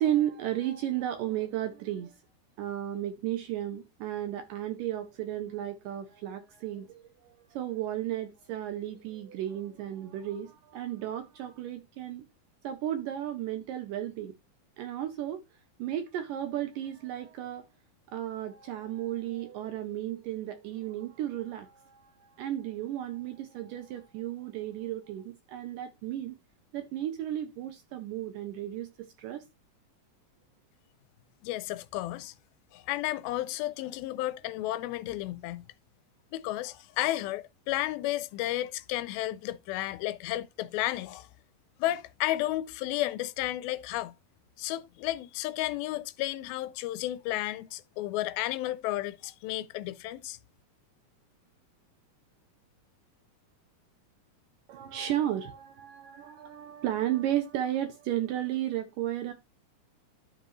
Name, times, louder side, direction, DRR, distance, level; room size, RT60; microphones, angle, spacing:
voice 1, 0.0-2.2 2.6-12.3 12.6-14.3 14.8-15.4 15.8-17.7 18.1-26.4 26.7-29.4 54.7-59.3, right 12 dB, 75° right, 2.2 m, -34 dB
voice 2, 31.4-32.3 32.7-35.7 36.3-41.3 41.8-44.1 44.6-50.4, left 15 dB, 85° left, 2.4 m, -32 dB
12.0 x 5.1 x 3.1 m
omnidirectional pair, 4.2 m